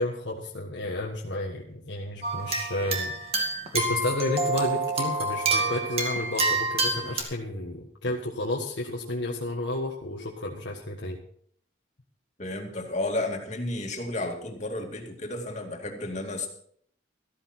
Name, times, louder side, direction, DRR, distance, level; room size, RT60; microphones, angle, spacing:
voice 1, 0.0-3.1 3.7-11.2, left 1 dB, 70° left, -1 dB, 1.5 m, -31 dB
sound 1, 2.2-7.2, right 3 dB, 30° right, 2.2 m, -27 dB
voice 2, 12.4-16.5, left 2 dB, 40° left, 2 dB, 2.4 m, -32 dB
13.5 x 13.5 x 4.4 m, 0.63 s
head